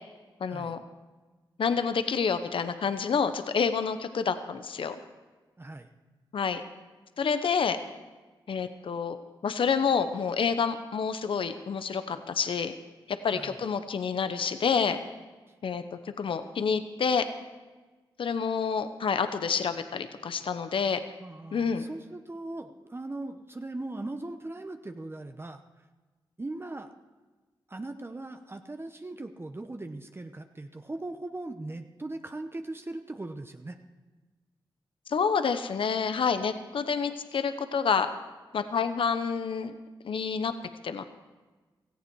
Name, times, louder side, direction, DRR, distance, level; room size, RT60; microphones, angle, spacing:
voice 1, 0.4-0.8 1.6-5.0 6.3-6.6 7.2-7.8 8.5-9.2 9.4-12.7 13.1-15.0 15.6-17.3 18.2-21.0 21.5-21.8 35.1-38.1 38.5-39.8 40.0-40.5 40.8-41.0, left 6 dB, 75° left, 10 dB, 0.9 m, -28 dB
voice 2, 5.6-5.9 13.3-13.6 21.2-25.6 26.4-26.9 27.7-33.8, right 2 dB, 25° right, 7 dB, 0.9 m, -39 dB
17.5 x 14.5 x 4.7 m, 1.3 s
cardioid pair, 55°, 9 cm